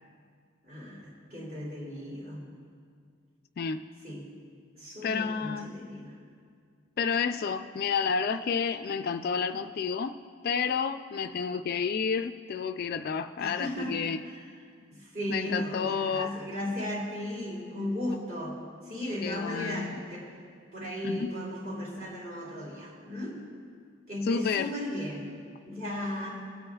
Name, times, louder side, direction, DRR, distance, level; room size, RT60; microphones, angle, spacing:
voice 1, 0.6-2.4 4.0-4.2 4.7-6.2 13.4-13.9 14.2-14.4 14.9-18.6 18.8-20.3 20.7-23.4 24.1-25.3 25.6-26.4, left 1 dB, 45° right, -5 dB, 2.8 m, -36 dB
voice 2, 5.0-5.7 7.0-10.2 10.4-14.2 15.3-16.3 19.2-20.0 21.0-21.3 24.3-24.7, left 6 dB, 45° left, 10 dB, 0.3 m, -30 dB
20.0 x 8.7 x 2.3 m, 2.1 s
head